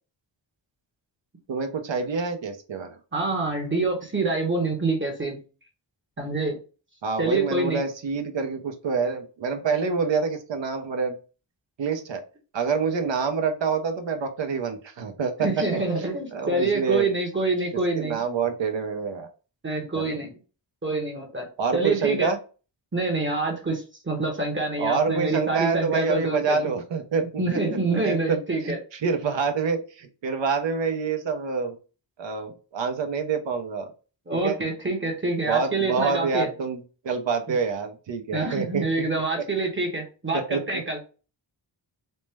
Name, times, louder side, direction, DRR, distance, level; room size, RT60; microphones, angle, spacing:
voice 1, 1.5-3.0 7.0-11.2 11.8-12.2 12.5-15.5 16.3-17.1 17.9-19.3 19.9-20.2 21.6-22.4 24.8-27.2 27.9-28.4 28.6-31.8 32.2-33.9 34.4-34.6 35.5-38.9 40.3-40.8, right 5 dB, 70° right, 6 dB, 0.8 m, -27 dB
voice 2, 3.1-5.4 6.2-6.6 7.2-7.8 15.4-18.2 19.6-20.3 20.8-21.5 21.7-22.3 22.9-26.6 27.4-28.8 34.3-36.5 38.3-41.0, right 3 dB, 25° right, 2 dB, 0.9 m, -26 dB
4.3 x 2.1 x 3.3 m, 0.34 s
wide cardioid pair, 160°, 46 cm